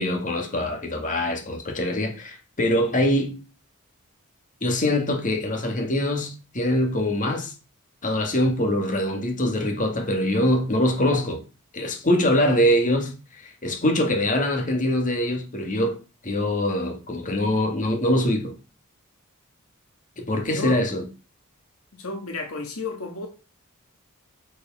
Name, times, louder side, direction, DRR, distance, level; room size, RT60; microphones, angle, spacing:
voice 1, 0.0-3.4 4.6-7.5 8.0-11.4 11.7-16.0 16.2-18.5 20.2-21.0, left 1 dB, 35° left, 2.1 m, -23 dB
voice 2, 20.3-20.9 21.9-23.3, left 4 dB, 70° left, 1.7 m, -32 dB
8.3 x 5.1 x 5.5 m
head